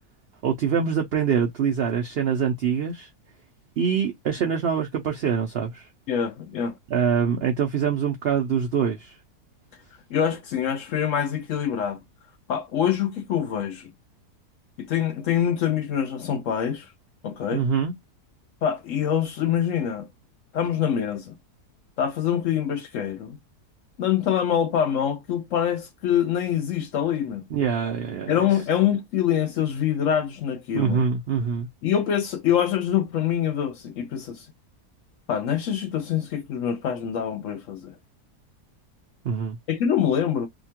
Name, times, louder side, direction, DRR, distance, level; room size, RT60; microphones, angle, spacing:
voice 1, 0.4-3.1 3.8-5.9 6.9-9.1 17.5-17.9 27.5-28.5 30.7-31.7 39.2-39.6, right 7 dB, 75° right, 0.5 m, -24 dB
voice 2, 6.1-6.8 10.1-12.0 12.5-13.9 14.8-16.9 17.2-17.6 18.6-20.1 20.5-21.3 22.0-23.4 24.0-27.4 28.3-31.0 31.8-34.5 35.3-37.9 39.7-40.5, left 9 dB, 70° left, 0.8 m, -25 dB
2.8 x 2.2 x 2.8 m
omnidirectional pair, 1.6 m